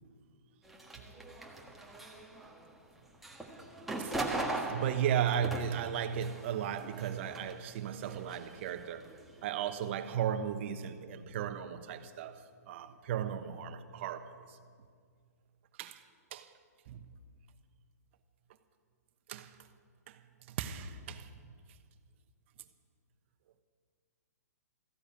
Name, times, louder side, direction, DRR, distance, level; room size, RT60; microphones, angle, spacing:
sound 1, 0.6-2.8 3.1-7.6 7.9-9.7, right 2 dB, ahead, 1.5 m, -40 dB
voice 1, 4.6-9.1 9.4-14.6 15.8-16.0 16.3-16.5 16.9-17.1 19.3-19.6 20.1-20.2 20.5-21.3, right 9 dB, 45° right, 1.1 m, -35 dB
14.5 x 10.0 x 8.6 m
hypercardioid pair, 130°, 9 cm